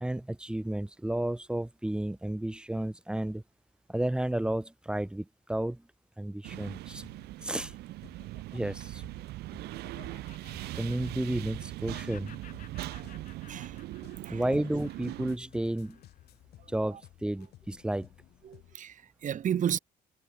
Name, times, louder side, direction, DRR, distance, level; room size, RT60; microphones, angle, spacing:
voice 1, 0.0-3.4 3.9-5.8 6.2-7.0 7.4-7.7 8.5-9.0 10.7-12.4 14.3-16.0 16.7-18.1, right 1 dB, 5° right, 0.6 m, -32 dB
sound 1, 6.4-15.4, right 17 dB, 75° right, 0.5 m, -41 dB
sound 2, 6.5-18.8, left 14 dB, 75° left, 7.5 m, -57 dB
Laughter, 7.4-11.6 11.9-16.4, left 9 dB, 50° left, 4.1 m, -56 dB
voice 2, 13.5-14.6 16.9-17.0 18.4-19.8, right 9 dB, 50° right, 2.2 m, -34 dB
cardioid pair, 110°, 17 cm